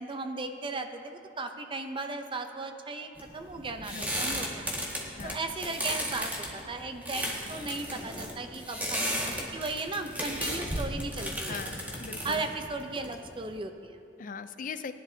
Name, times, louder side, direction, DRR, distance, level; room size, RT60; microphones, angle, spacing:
voice 1, 0.0-4.6 5.2-11.6 12.2-14.0, right 3 dB, 30° right, 6 dB, 0.6 m, -36 dB
sound 1, 3.2-13.5, equal, 10° right, 1.8 m, -35 dB
voice 2, 11.5-12.4 14.2-14.9, left 5 dB, 45° left, 11 dB, 0.5 m, -40 dB
20.0 x 11.0 x 2.7 m, 2.4 s
head